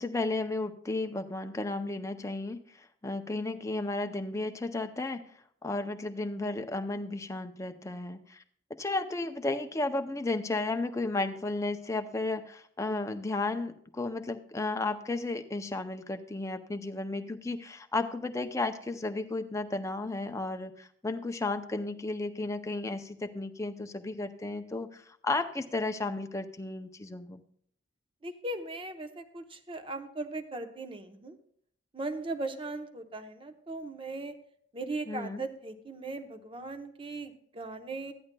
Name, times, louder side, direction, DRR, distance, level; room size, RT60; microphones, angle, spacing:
voice 1, 0.0-2.6 3.0-5.2 5.6-8.4 8.8-27.4 35.1-35.4, left 2 dB, 15° left, 7 dB, 0.5 m, -33 dB
voice 2, 28.2-31.4 31.9-34.3 34.7-38.1, right 2 dB, 30° right, 8 dB, 0.8 m, -38 dB
14.0 x 10.5 x 2.2 m, 0.64 s
head